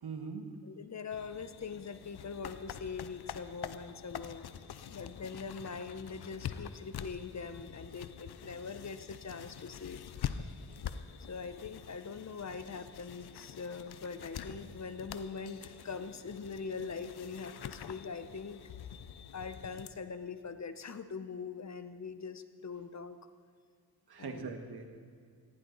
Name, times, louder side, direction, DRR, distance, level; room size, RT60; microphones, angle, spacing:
voice 1, 0.0-0.5 24.1-24.8, right 5 dB, 85° right, 5 dB, 1.7 m, -41 dB
voice 2, 0.6-4.4 4.9-10.0 11.3-18.6 19.3-23.2 24.2-24.5, left 5 dB, 45° left, 11 dB, 0.9 m, -42 dB
sound 1, 1.1-19.9, left 8 dB, 85° left, 0.7 m, -45 dB
18.0 x 16.0 x 4.1 m, 2.1 s
wide cardioid pair, 85°, 38 cm